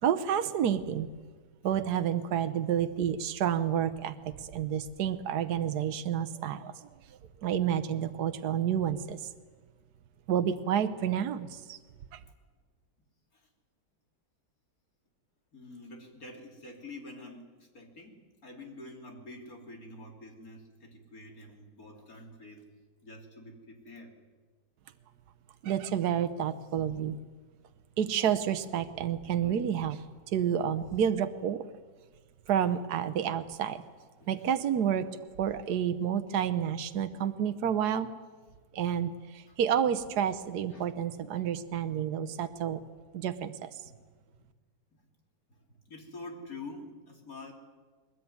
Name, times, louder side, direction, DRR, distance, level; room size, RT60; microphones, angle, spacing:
voice 1, 0.0-1.1 1.6-9.3 10.3-11.8 12.1-12.2 25.6-27.2 28.0-31.7 32.5-33.8 34.3-35.1 35.4-38.1 38.7-42.8 43.1-43.8, right 9 dB, 75° right, 10 dB, 1.4 m, -30 dB
voice 2, 15.5-22.6 23.0-24.2 34.2-34.5 35.4-35.5 39.5-39.6 40.7-40.9 41.2-41.5 43.8-44.0 44.4-44.5 44.9-45.1 45.5-47.5, left 2 dB, 60° left, 2 dB, 3.7 m, -47 dB
21.5 x 20.5 x 9.5 m, 1.4 s
omnidirectional pair, 1.7 m